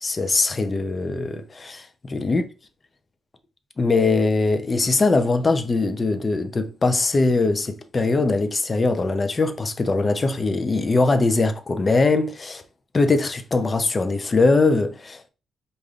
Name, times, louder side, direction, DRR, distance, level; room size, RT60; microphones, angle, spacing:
voice 1, 0.0-2.4 3.8-12.6 12.9-15.3, left 3 dB, 30° left, 0.6 m, -21 dB
4.9 x 2.5 x 2.4 m
cardioid pair, 95°, 0 cm